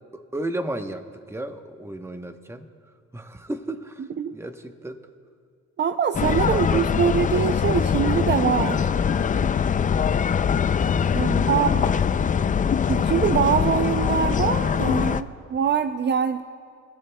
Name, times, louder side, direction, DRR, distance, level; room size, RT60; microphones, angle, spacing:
voice 1, 0.1-2.7 3.1-5.0 6.5-6.9 7.3-7.4 11.3-12.5, right 1 dB, 10° right, 7 dB, 0.9 m, -34 dB
voice 2, 5.8-8.9 11.1-11.8 12.9-16.4, right 8 dB, 35° right, 9 dB, 0.5 m, -23 dB
sound 1, 6.1-15.2, left 7 dB, 25° left, 0.4 m, -22 dB
25.5 x 16.0 x 2.3 m, 2.2 s
cardioid pair, 90°, 30 cm